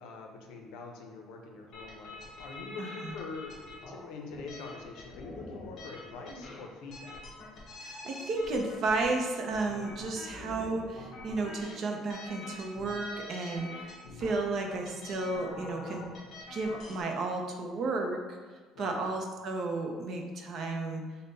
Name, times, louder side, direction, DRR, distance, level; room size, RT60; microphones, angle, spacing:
voice 1, 0.0-7.3 18.7-19.0, left 4 dB, 75° left, 2 dB, 0.6 m, -45 dB
sound 1, 1.7-17.0, left 2 dB, 40° left, 0.9 m, -46 dB
voice 2, 2.8-3.1 7.8-16.0 16.5-18.4 18.8-21.0, right 3 dB, 40° right, 2 dB, 0.5 m, -33 dB
5.3 x 2.1 x 3.9 m, 1.4 s
cardioid pair, 165°, 0 cm